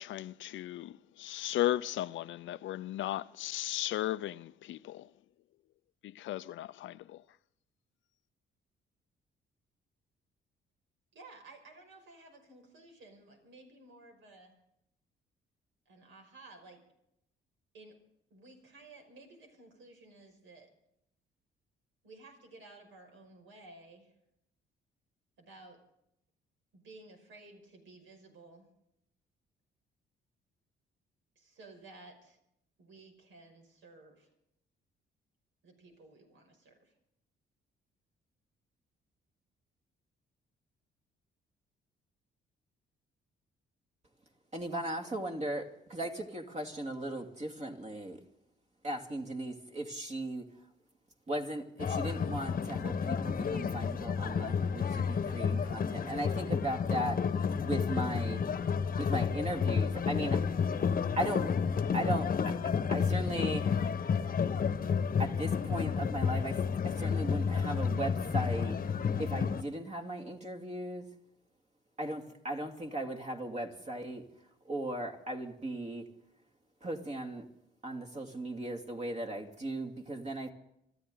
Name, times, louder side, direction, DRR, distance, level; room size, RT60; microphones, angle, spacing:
voice 1, 0.0-5.1 6.0-7.2, left 14 dB, 75° left, 0.5 m, -36 dB
voice 2, 11.1-14.5 15.9-16.8 17.7-18.0 18.3-20.7 22.0-24.1 25.4-25.8 26.7-28.7 31.4-32.4 32.8-34.3 35.6-36.9, right 2 dB, 80° right, 5.6 m, -55 dB
voice 3, 44.5-48.2 48.8-50.5 51.3-58.4 59.0-60.4 61.2-61.6 61.9-63.8 65.2-68.8 69.2-71.1 72.0-74.2 74.6-76.1 76.8-77.5 77.8-80.5, right 1 dB, 35° right, 2.5 m, -37 dB
sound 1, 51.8-69.6, left 6 dB, 45° left, 1.1 m, -31 dB
25.5 x 14.0 x 3.9 m
cardioid pair, 90°, 20 cm